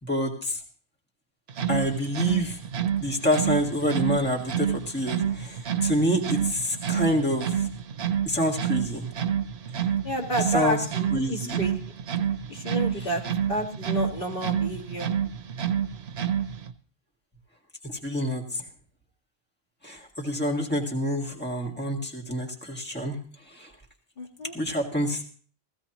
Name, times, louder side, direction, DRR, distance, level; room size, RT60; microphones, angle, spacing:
voice 1, 0.0-0.6 1.7-2.6 3.0-7.7 8.2-9.1 10.5-10.9 11.1-11.6 13.0-13.1 17.8-18.6 19.8-23.2 23.5-23.7 24.5-25.2, equal, 10° left, 0 dB, 1.8 m, -27 dB
sound 1, 1.5-16.7, right 8 dB, 85° right, 1.0 m, -29 dB
voice 2, 10.0-11.7 12.5-13.2 13.5-15.1 24.2-24.5, equal, 60° left, 0 dB, 2.0 m, -30 dB
16.0 x 16.0 x 3.0 m, 0.43 s
omnidirectional pair, 1.0 m